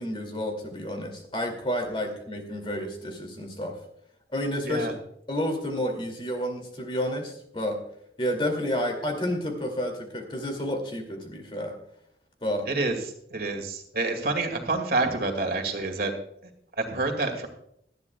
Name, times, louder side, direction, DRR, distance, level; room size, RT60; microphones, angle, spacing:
voice 1, 0.0-3.8 4.3-4.9 5.3-7.8 8.2-11.8 12.4-12.7, equal, 30° left, 4 dB, 2.4 m, -30 dB
voice 2, 12.7-16.1 16.8-17.5, right 3 dB, 55° right, 4 dB, 2.2 m, -28 dB
18.5 x 12.5 x 2.3 m, 0.72 s
head